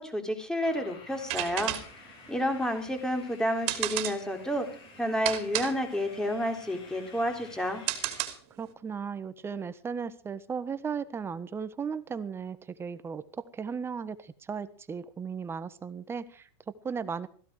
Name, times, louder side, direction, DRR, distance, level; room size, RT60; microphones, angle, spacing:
voice 1, 0.0-1.8 2.3-4.7 5.0-7.8, equal, 5° left, 6 dB, 3.7 m, -30 dB
sound 1, 0.6-8.3, left 5 dB, 40° left, 6.3 m, -52 dB
sound 2, 1.1-8.7, right 14 dB, 45° right, 2.8 m, -35 dB
voice 2, 8.6-17.3, right 6 dB, 20° right, 14 dB, 1.3 m, -36 dB
17.0 x 15.5 x 4.9 m, 0.43 s
supercardioid pair, 125°, 14 cm